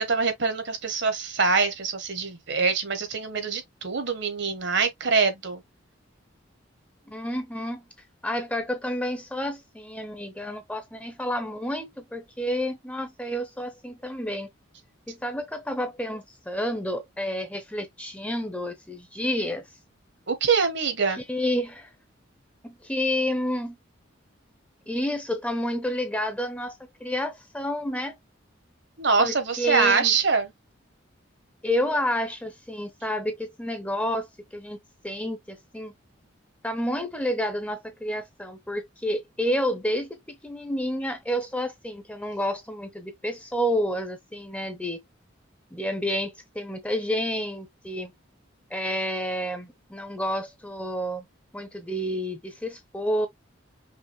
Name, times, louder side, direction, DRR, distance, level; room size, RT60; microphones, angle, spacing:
voice 1, 0.0-5.6 20.3-21.2 29.0-30.5, right 4 dB, 60° right, 1.3 m, -24 dB
voice 2, 7.1-7.8 8.2-14.5 15.1-19.7 21.3-21.9 22.6-23.8 24.9-26.7 27.0-28.1 29.2-30.1 31.6-34.8 35.0-35.9 36.6-45.0 45.7-48.1 48.7-51.3 51.5-53.3, equal, 5° left, 0.8 m, -29 dB
5.7 x 2.4 x 3.0 m
head